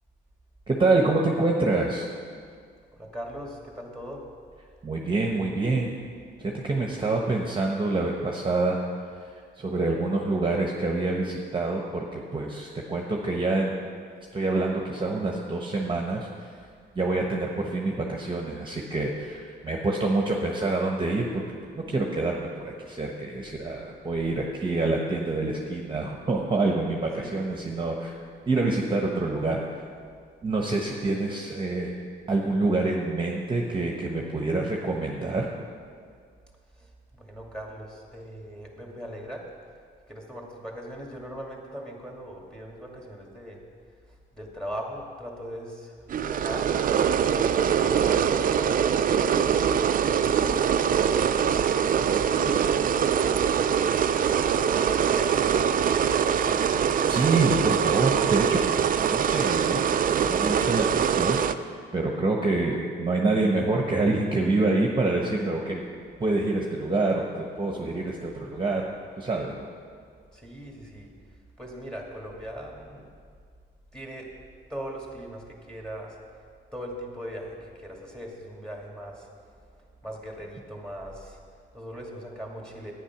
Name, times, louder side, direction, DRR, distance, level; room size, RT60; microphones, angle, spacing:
voice 1, 0.7-2.1 4.8-5.9 6.4-8.8 9.6-13.7 14.3-16.5 16.9-21.4 21.7-28.1 28.5-29.8 30.4-31.9 32.3-35.5 57.1-58.6 59.0-59.8 60.1-65.8 66.2-68.8 69.2-69.7, right 2 dB, 25° right, 0 dB, 1.1 m, -26 dB
voice 2, 2.9-4.3 27.2-27.8 36.7-39.5 40.1-43.6 44.1-46.7 47.2-49.7 50.3-51.5 51.8-53.8 54.3-56.6 70.3-73.1 73.9-74.3 74.7-76.4 76.7-82.9, equal, 5° left, 0 dB, 2.4 m, -40 dB
sound 1, 46.1-61.5, right 8 dB, 45° right, 0.5 m, -23 dB
10.0 x 9.1 x 6.0 m, 2.1 s
cardioid pair, 90°, 20 cm